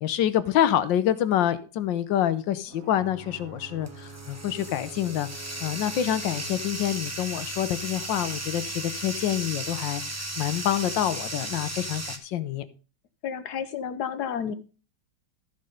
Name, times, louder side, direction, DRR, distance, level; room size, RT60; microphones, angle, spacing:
voice 1, 0.0-5.3 5.6-12.6, left 11 dB, 80° left, 1.5 m, -27 dB
Ocean / Boat Water vehicle / Alarm, 2.6-10.2, right 7 dB, 50° right, 1.3 m, -50 dB
Bathtub (filling or washing), 3.0-12.2, right 1 dB, 15° right, 0.7 m, -36 dB
voice 2, 13.2-14.5, left 8 dB, 65° left, 1.3 m, -31 dB
14.0 x 5.4 x 5.1 m
omnidirectional pair, 2.0 m